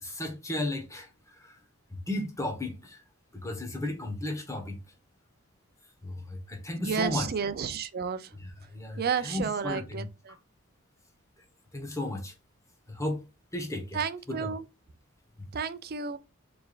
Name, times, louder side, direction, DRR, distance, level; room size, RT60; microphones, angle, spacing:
voice 1, 0.0-1.6 1.9-3.0 3.3-4.8 6.0-7.3 8.3-10.1 11.7-12.3 12.9-13.2 13.5-14.5, left 1 dB, 15° left, 1.1 m, -34 dB
voice 2, 6.8-8.3 9.0-10.3 13.9-14.6 15.5-16.2, right 6 dB, 50° right, 0.5 m, -31 dB
4.4 x 3.3 x 2.4 m
head